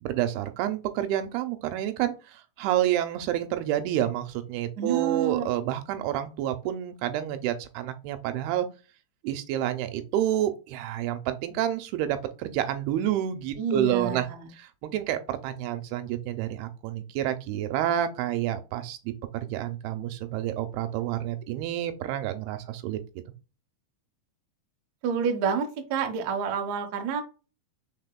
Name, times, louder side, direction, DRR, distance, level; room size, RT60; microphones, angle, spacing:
voice 1, 0.0-8.7 9.2-14.3 14.6-23.0, right 12 dB, 85° right, 8 dB, 2.6 m, -29 dB
voice 2, 4.8-5.5 13.6-14.5 25.0-27.2, right 6 dB, 70° right, 4 dB, 1.8 m, -28 dB
5.7 x 4.1 x 2.2 m, 0.33 s
omnidirectional pair, 4.5 m